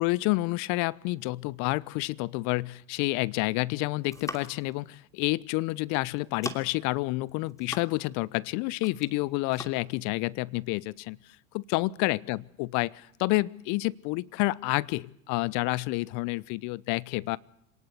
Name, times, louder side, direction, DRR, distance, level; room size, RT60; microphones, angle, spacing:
voice 1, 0.0-11.2 11.5-17.4, left 22 dB, 45° left, 22 dB, 0.9 m, -29 dB
sound 1, 3.9-4.7 5.7-5.9 6.2-6.9 7.3-8.2 8.5-9.2 9.5-9.7, left 2 dB, 10° left, 2.8 m, -40 dB
27.0 x 18.5 x 8.1 m, 0.74 s
hypercardioid pair, 85°, 40 cm